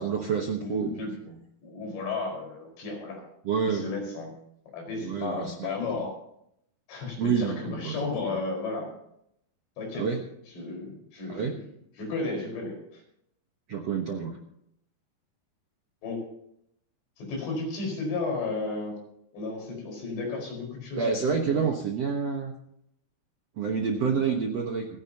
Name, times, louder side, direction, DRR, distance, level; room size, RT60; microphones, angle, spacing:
voice 1, 0.0-0.9 1.3-1.4 3.4-3.9 5.0-5.8 7.2-8.3 9.9-10.2 11.3-11.6 13.7-14.4 21.0-22.5 23.6-24.9, right 6 dB, 70° right, 2 dB, 1.5 m, -28 dB
voice 2, 0.6-1.1 1.6-3.3 3.6-4.3 4.7-6.1 6.9-8.9 9.8-10.1 10.5-11.5 12.0-13.0 16.0-16.2 17.2-19.0 19.3-21.1 21.5-21.6, left 3 dB, 85° left, 1 dB, 7.1 m, -33 dB
28.5 x 10.5 x 2.9 m, 0.75 s
omnidirectional pair, 4.9 m